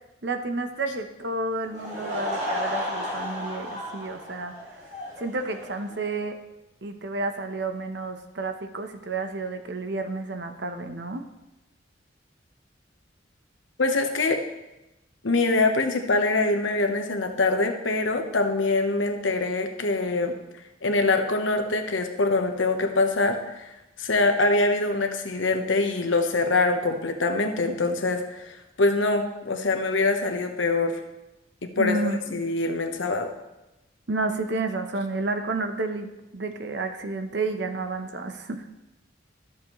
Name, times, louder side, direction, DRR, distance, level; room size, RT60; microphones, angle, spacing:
voice 1, 0.2-4.5 5.2-6.4 6.8-11.2 31.8-32.4 34.1-38.6, right 3 dB, 65° right, 7 dB, 0.8 m, -30 dB
Laughter / Crowd, 1.6-6.1, left 1 dB, 40° right, 2.3 m, -33 dB
voice 2, 13.8-14.4 15.2-20.3 20.8-23.7 24.0-31.0 31.6-33.3, left 3 dB, 90° left, 6 dB, 1.0 m, -24 dB
13.5 x 7.2 x 3.1 m, 0.98 s
head